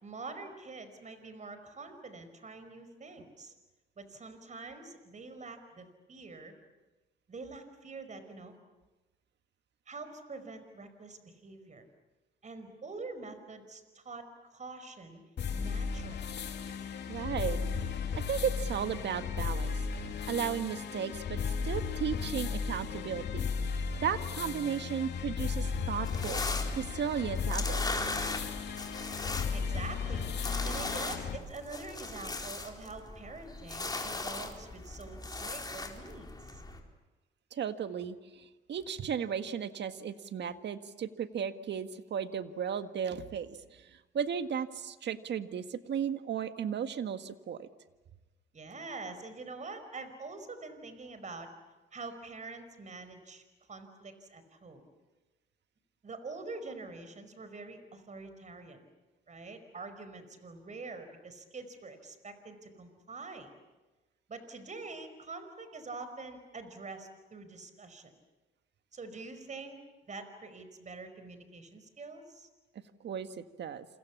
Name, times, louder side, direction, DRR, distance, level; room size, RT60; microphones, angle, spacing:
voice 1, 0.0-3.5 4.0-6.5 7.3-8.6 9.9-11.9 12.4-14.3 14.5-15.2 15.5-16.4 29.5-30.3 30.6-36.6 48.5-51.5 51.9-53.4 53.7-54.8 56.0-58.8 59.3-63.5 64.3-68.1 68.9-69.8 70.1-72.5, right 3 dB, 35° right, 9 dB, 5.0 m, -45 dB
sound 1, 15.4-31.4, left 5 dB, 60° left, 2.9 m, -35 dB
voice 2, 17.1-17.6 18.2-19.9 20.3-23.5 24.0-26.4 26.8-27.8 37.5-47.7 73.0-73.9, right 8 dB, 60° right, 9 dB, 1.7 m, -35 dB
sound 2, 26.0-36.8, left 3 dB, 20° left, 4.2 m, -39 dB
28.5 x 27.0 x 7.3 m, 1.2 s
cardioid pair, 90°, 20 cm